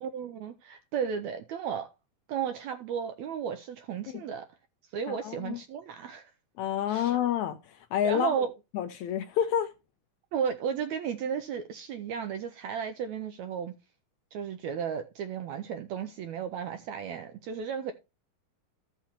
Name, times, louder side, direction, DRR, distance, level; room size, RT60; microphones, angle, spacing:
voice 1, 0.0-1.9 2.3-4.4 4.9-6.3 6.9-7.2 8.0-8.5 10.3-13.7 14.3-17.9, right 7 dB, 80° right, 1.6 m, -34 dB
voice 2, 5.1-5.6 6.6-8.3 8.7-9.7, left 10 dB, 80° left, 1.7 m, -29 dB
14.5 x 5.7 x 2.9 m
omnidirectional pair, 3.8 m